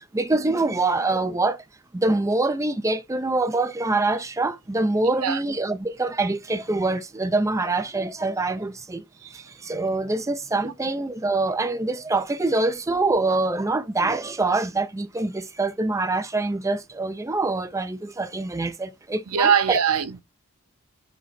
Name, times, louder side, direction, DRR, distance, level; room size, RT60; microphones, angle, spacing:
voice 1, 0.1-1.6 1.9-9.0 9.3-19.8, right 2 dB, 15° right, 0.5 m, -25 dB
voice 2, 19.3-20.2, right 7 dB, 80° right, 0.8 m, -22 dB
5.1 x 4.0 x 5.8 m
head